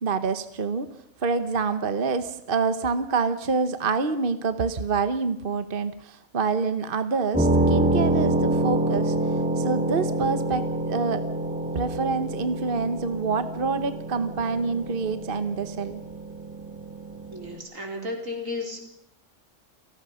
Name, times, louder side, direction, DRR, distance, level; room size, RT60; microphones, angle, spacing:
voice 1, 0.0-0.9 1.2-9.1 9.6-11.2 11.7-16.0, right 4 dB, 45° right, 10 dB, 1.2 m, -27 dB
sound 1, 7.3-17.6, right 1 dB, 5° right, 3.0 m, -27 dB
voice 2, 17.3-18.8, left 2 dB, 80° right, 1 dB, 4.8 m, -33 dB
29.0 x 18.5 x 5.7 m, 0.79 s
omnidirectional pair, 1.3 m